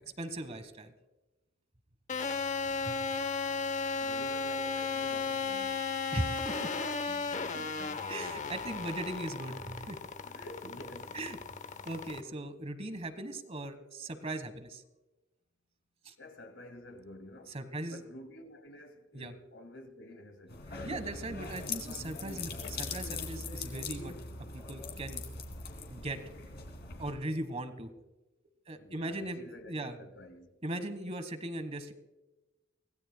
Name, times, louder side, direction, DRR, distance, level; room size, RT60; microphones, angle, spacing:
voice 1, 0.2-0.9 2.8-3.0 6.1-6.7 8.1-10.0 11.1-11.4 11.8-14.8 16.0-16.1 17.5-18.0 19.1-19.3 20.8-24.1 24.5-25.2 25.9-26.2 27.0-27.9 28.7-30.0 30.6-31.9, right 1 dB, 35° right, 1.3 m, -38 dB
sound 1, 2.1-12.2, left 4 dB, 40° left, 0.8 m, -35 dB
voice 2, 4.0-5.9 7.1-8.1 10.2-11.2 16.2-17.6 17.9-20.7 28.7-30.5, left 1 dB, 85° left, 2.0 m, -50 dB
sound 2, 20.5-27.1, left 4 dB, 60° left, 2.8 m, -41 dB
24.0 x 17.0 x 2.2 m
head